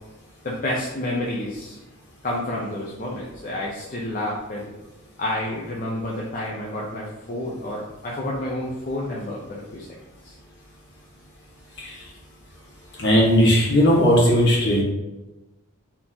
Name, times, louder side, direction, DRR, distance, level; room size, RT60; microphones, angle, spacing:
voice 1, 0.4-1.8 2.2-4.7 5.2-9.9 10.2-10.3, left 1 dB, 35° left, -4 dB, 0.6 m, -29 dB
voice 2, 13.0-14.8, equal, 50° left, -4 dB, 1.5 m, -17 dB
4.4 x 2.9 x 3.8 m, 1.1 s
head